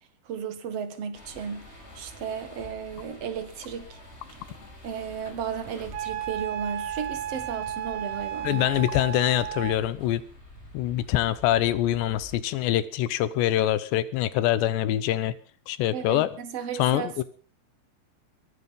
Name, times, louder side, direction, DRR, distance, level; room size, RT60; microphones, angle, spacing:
voice 1, 0.3-4.0 4.8-8.7 15.9-17.2, right 7 dB, 55° right, 1.9 m, -34 dB
sound 1, 1.1-12.4, equal, 15° left, 4.7 m, -47 dB
Wind instrument woodwind instrument, 5.9-9.8, right 10 dB, 80° right, 3.7 m, -33 dB
voice 2, 8.4-10.2 10.7-15.4 15.7-16.3 16.8-17.2, left 13 dB, 80° left, 3.1 m, -24 dB
23.0 x 10.0 x 5.4 m
omnidirectional pair, 5.1 m